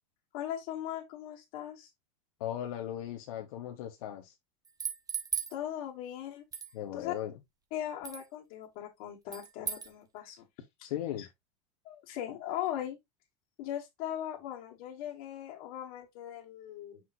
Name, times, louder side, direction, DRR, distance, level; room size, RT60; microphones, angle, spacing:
voice 1, 0.3-1.9 5.5-6.5 6.9-7.1 7.7-10.4 10.8-10.9 11.2-11.3 11.9-13.0 13.6-17.0, left 11 dB, 60° left, 1.9 m, -39 dB
voice 2, 2.4-4.3 6.7-7.3 10.8-11.3, left 11 dB, 75° left, 1.1 m, -37 dB
sound 1, 4.7-5.6 6.5-6.7 8.0-8.3 9.3-9.9, right 6 dB, 20° right, 1.3 m, -36 dB
6.3 x 5.8 x 2.6 m
supercardioid pair, 120°, 19 cm